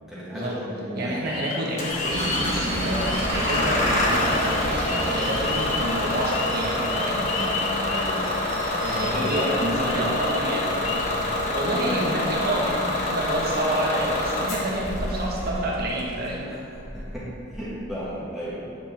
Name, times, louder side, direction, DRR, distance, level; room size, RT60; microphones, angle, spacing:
voice 1, 0.1-0.6 0.9-1.3 7.3-7.6 7.9-8.3 8.9-10.0 16.4-16.6 16.9-18.6, equal, ahead, -10 dB, 1.7 m, -34 dB
voice 2, 1.0-7.3 8.8-16.5, right 1 dB, 50° right, -4 dB, 1.7 m, -29 dB
sound 1, 1.2-11.1, left 5 dB, 80° left, 0.7 m, -35 dB
Bus / Engine starting, 1.8-18.0, left 1 dB, 35° left, 1.3 m, -27 dB
sound 2, 2.1-14.7, right 1 dB, 75° right, 1.7 m, -34 dB
9.7 x 7.4 x 3.7 m, 2.7 s
head